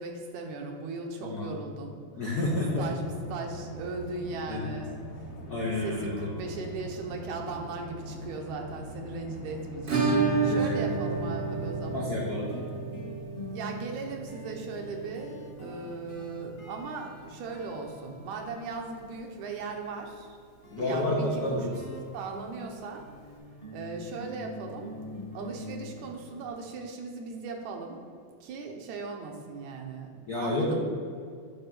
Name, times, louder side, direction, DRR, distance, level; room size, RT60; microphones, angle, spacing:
voice 1, 0.0-2.0 2.8-5.0 5.8-12.1 13.5-20.4 20.7-21.8 22.1-23.0 23.7-24.9 25.3-28.0 28.4-30.8, right 4 dB, 80° right, 2 dB, 2.2 m, -38 dB
voice 2, 1.2-1.5 2.1-2.9 4.5-4.6 5.5-6.3 10.4-10.9 11.9-12.5 20.7-21.7 30.3-30.8, left 1 dB, 80° left, -3 dB, 0.8 m, -30 dB
sound 1, 2.6-11.8, equal, 55° left, 1.5 m, -42 dB
Acoustic guitar / Strum, 9.9-18.5 18.7-18.8 19.1-19.2 19.6-19.7 21.7-21.8 23.0-23.1, right 4 dB, 50° right, 0.8 m, -32 dB
sound 2, 11.4-11.5 11.8-19.1 20.6-26.5, left 1 dB, 30° left, 1.1 m, -45 dB
9.2 x 3.7 x 6.0 m, 2.3 s
omnidirectional pair, 3.3 m